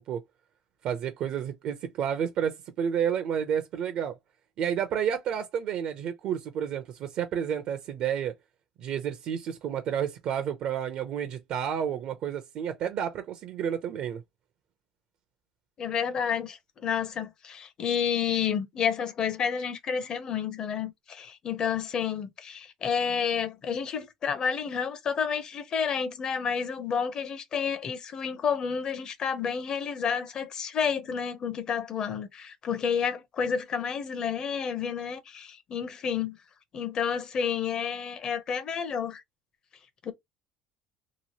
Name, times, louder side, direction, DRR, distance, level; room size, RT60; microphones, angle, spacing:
voice 1, 0.8-4.2 4.6-8.3 8.8-14.2, right 8 dB, 55° right, 0.5 m, -30 dB
voice 2, 15.8-36.4 36.7-39.2 40.0-40.1, left 7 dB, 40° left, 0.7 m, -30 dB
2.9 x 2.4 x 2.8 m
cardioid pair, 130°, 2 cm